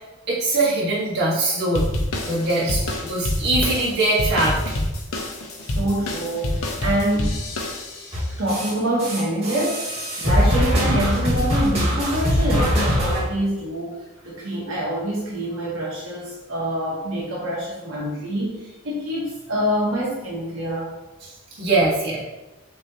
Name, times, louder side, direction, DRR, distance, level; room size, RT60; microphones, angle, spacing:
voice 1, 0.3-1.9 2.2-4.6 21.2-22.2, right 2 dB, 50° right, -7 dB, 1.4 m, -22 dB
sound 1, 1.7-8.2, left 1 dB, 80° left, 0.8 m, -27 dB
voice 2, 5.6-7.4 8.4-20.9, equal, 75° right, -5 dB, 1.0 m, -26 dB
sound 2, 8.1-8.7 9.0-13.2, equal, 30° right, 1.5 m, -21 dB
6.2 x 2.8 x 2.8 m, 1.1 s
head